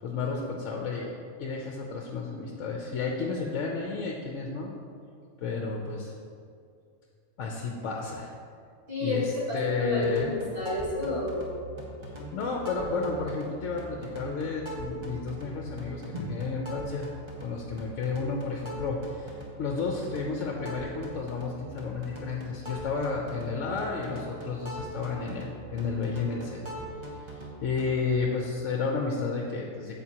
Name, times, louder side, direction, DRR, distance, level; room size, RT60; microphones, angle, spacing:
voice 1, 0.0-4.7 5.4-6.1 7.4-8.3 9.0-10.7 12.3-17.1 17.4-26.6 27.2-30.0, left 4 dB, 70° left, 0 dB, 1.0 m, -32 dB
voice 2, 9.5-11.9 16.1-16.2, left 1 dB, 45° right, -8 dB, 2.3 m, -32 dB
sound 1, 9.9-27.9, right 1 dB, 20° right, 1.1 m, -41 dB
8.9 x 7.3 x 2.9 m, 2.3 s
omnidirectional pair, 1.4 m